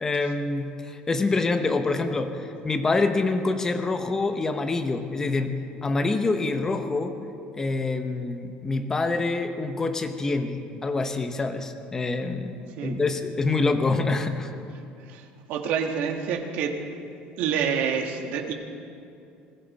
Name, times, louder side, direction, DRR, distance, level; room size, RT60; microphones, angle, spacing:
voice 1, 0.0-5.5 5.8-7.2 7.6-14.5, left 3 dB, 15° left, 7 dB, 1.0 m, -26 dB
voice 2, 15.1-16.7 17.4-18.5, right 7 dB, 60° right, 4 dB, 1.6 m, -27 dB
20.5 x 16.0 x 4.2 m, 2.6 s
cardioid pair, 155°, 3 cm